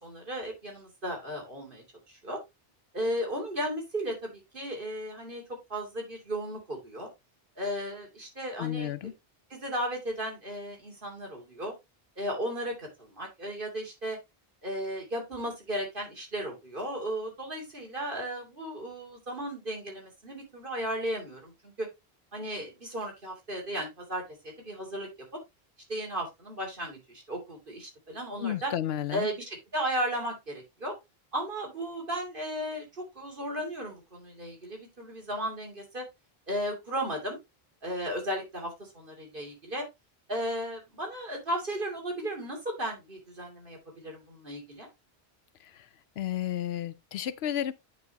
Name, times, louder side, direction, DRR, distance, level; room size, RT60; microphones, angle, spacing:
voice 1, 0.0-2.4 2.9-5.4 5.7-7.1 7.6-8.9 9.5-11.7 12.2-14.2 14.6-21.9 22.3-25.4 25.9-28.7 29.1-30.9 31.3-36.0 36.5-37.4 37.8-39.8 40.3-44.9, right 1 dB, 55° right, 3.0 m, -35 dB
voice 2, 8.6-9.1 28.4-29.3 46.2-47.7, left 11 dB, 80° left, 0.9 m, -32 dB
9.1 x 5.4 x 2.9 m
omnidirectional pair, 1.0 m